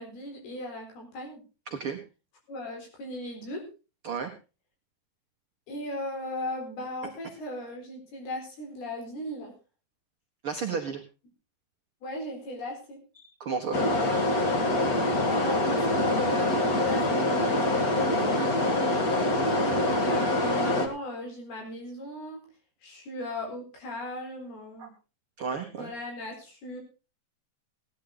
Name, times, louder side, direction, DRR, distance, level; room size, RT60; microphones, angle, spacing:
voice 1, 0.0-1.4 2.5-3.6 5.7-9.5 12.0-13.0 15.2-18.5 19.8-22.4 22.8-24.9 25.8-26.8, left 1 dB, 80° left, 1 dB, 6.1 m, -37 dB
voice 2, 1.7-2.0 4.0-4.3 10.4-11.0 13.2-13.8 19.4-19.9 24.8-24.9 25.4-25.9, right 5 dB, 75° right, 2 dB, 1.2 m, -33 dB
sound 1, 13.7-20.9, left 1 dB, 45° left, 1.2 m, -25 dB
17.0 x 10.5 x 3.9 m, 0.32 s
omnidirectional pair, 4.5 m